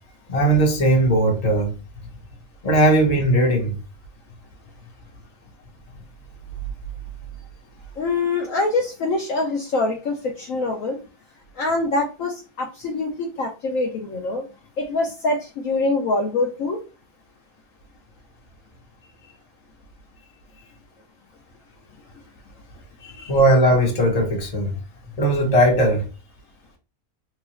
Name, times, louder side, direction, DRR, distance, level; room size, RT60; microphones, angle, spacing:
voice 1, 0.3-1.7 2.6-3.8 23.3-24.7 25.2-26.0, right 1 dB, 30° left, 1.0 m, -18 dB
voice 2, 8.0-11.0 11.6-14.4 14.8-16.8 23.0-23.3, left 2 dB, 65° left, 1.0 m, -24 dB
3.8 x 2.6 x 3.1 m
omnidirectional pair, 1.6 m